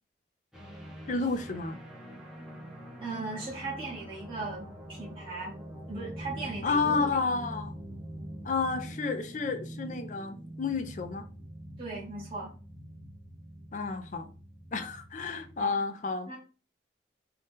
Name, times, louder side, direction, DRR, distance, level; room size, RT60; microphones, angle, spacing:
sound 1, 0.5-15.6, right 1 dB, ahead, 0.6 m, -44 dB
voice 1, 1.1-1.8 6.6-7.7 8.4-11.2 13.7-14.3 14.7-16.4, left 4 dB, 40° left, 0.4 m, -31 dB
voice 2, 3.0-5.5 5.9-7.1 11.8-12.5 15.6-15.7 16.3-16.4, right 3 dB, 30° right, 0.9 m, -38 dB
2.7 x 2.2 x 3.5 m
head